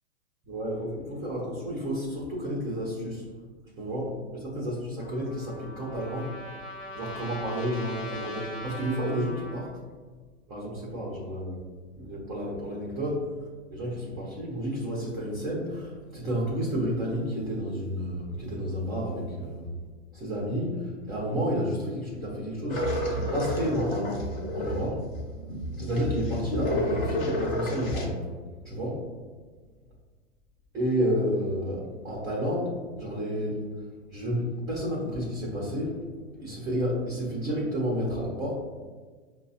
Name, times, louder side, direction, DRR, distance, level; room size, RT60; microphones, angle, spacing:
voice 1, 0.5-3.3 3.8-6.3 6.9-9.7 10.5-11.6 12.0-13.3 13.7-19.8 20.1-25.0 25.8-28.2 28.6-29.0 30.7-33.6 34.1-36.0 36.3-38.5, equal, 10° right, -6 dB, 0.3 m, -31 dB
Trumpet, 5.0-9.7, left 1 dB, 70° left, 1.1 m, -41 dB
sound 1, 22.7-28.1, left 1 dB, 45° left, 0.8 m, -31 dB
5.4 x 2.0 x 2.6 m, 1.4 s
hypercardioid pair, 125°, 39 cm